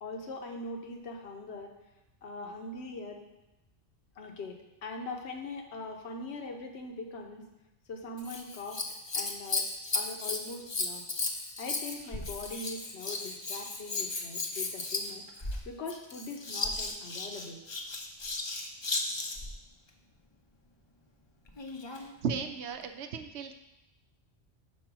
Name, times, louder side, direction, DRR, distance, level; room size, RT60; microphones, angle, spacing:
voice 1, 0.0-1.7 2.2-3.2 4.2-7.4 7.9-8.8 9.1-9.6 9.9-11.0 11.6-15.2 15.6-17.6, left 3 dB, 75° left, 3 dB, 1.1 m, -41 dB
Scissors, 8.2-19.5 21.5-22.1 22.8-22.9, left 3 dB, 35° left, 0.5 m, -35 dB
voice 2, 22.0-23.5, right 6 dB, 75° right, 7 dB, 0.9 m, -35 dB
5.4 x 4.3 x 6.0 m, 0.97 s
omnidirectional pair, 1.1 m